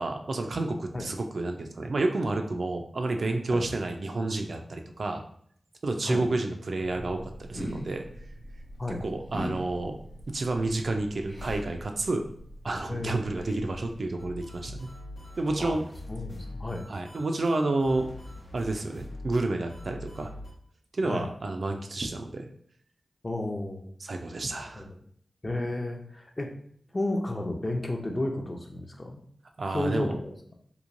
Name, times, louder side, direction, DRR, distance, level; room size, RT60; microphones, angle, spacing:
voice 1, 0.0-5.2 5.8-8.0 8.9-10.0 10.3-12.2 12.6-14.9 15.4-15.8 16.9-18.1 18.5-20.3 20.9-22.5 24.0-24.8 29.6-30.2, right 2 dB, 70° right, 4 dB, 0.3 m, -30 dB
sound 1, 6.8-14.1, equal, 55° left, 1.0 m, -42 dB
voice 2, 12.9-13.3 15.6-15.8 16.1-16.8 21.0-21.3 23.2-23.9 24.7-24.9 25.4-26.5 26.9-29.2 29.7-30.2, left 1 dB, 35° left, 3 dB, 0.5 m, -32 dB
sound 2, 14.2-20.5, left 1 dB, 85° left, 0.8 m, -43 dB
3.0 x 2.2 x 2.5 m, 0.63 s
cardioid pair, 45°, 0 cm